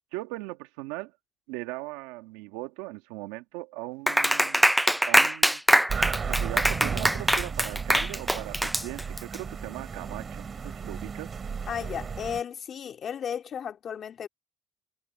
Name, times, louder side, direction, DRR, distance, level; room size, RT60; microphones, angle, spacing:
voice 1, 0.1-1.1 1.5-4.7 5.1-5.6 6.3-11.3, right 20 dB, 90° right, 2.1 m, -39 dB
Clapping, 4.1-9.4, equal, ahead, 0.3 m, -23 dB
sound 1, 5.9-12.4, right 6 dB, 40° right, 4.5 m, -34 dB
voice 2, 11.7-14.3, left 8 dB, 55° left, 2.2 m, -34 dB
supercardioid pair, 65°, 0 cm